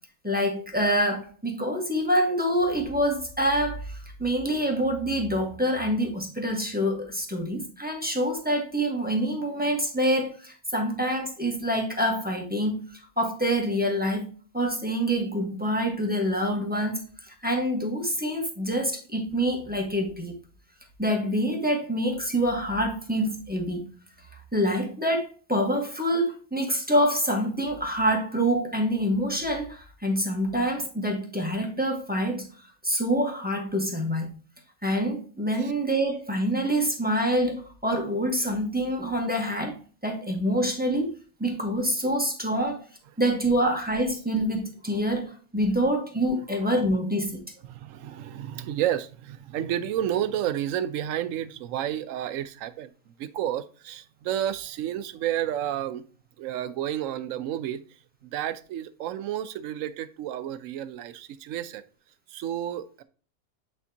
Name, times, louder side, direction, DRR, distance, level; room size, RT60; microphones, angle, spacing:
voice 1, 0.2-14.3 14.5-20.3 21.0-23.8 24.5-32.5 32.8-34.4 34.8-41.1 41.4-42.8 43.2-47.4, equal, 5° right, 1.2 m, -26 dB
voice 2, 47.6-56.0 56.4-57.8 58.2-61.8 62.3-63.0, right 11 dB, 70° right, 0.9 m, -31 dB
8.3 x 4.3 x 2.8 m
omnidirectional pair, 1.5 m